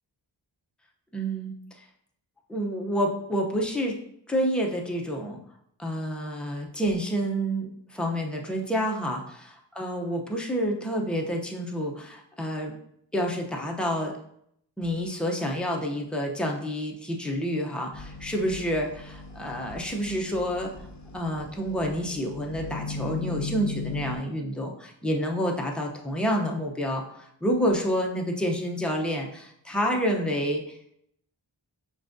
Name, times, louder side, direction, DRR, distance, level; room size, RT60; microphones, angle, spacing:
voice 1, 1.1-1.9 2.5-4.0 4.3-5.4 5.8-12.7 13.1-14.1 14.8-20.7 21.1-30.8, equal, ahead, 0 dB, 0.6 m, -29 dB
sound 1, 17.9-24.2, left 4 dB, 40° left, 0.7 m, -38 dB
6.0 x 2.4 x 2.6 m, 0.71 s
wide cardioid pair, 55°, 45 cm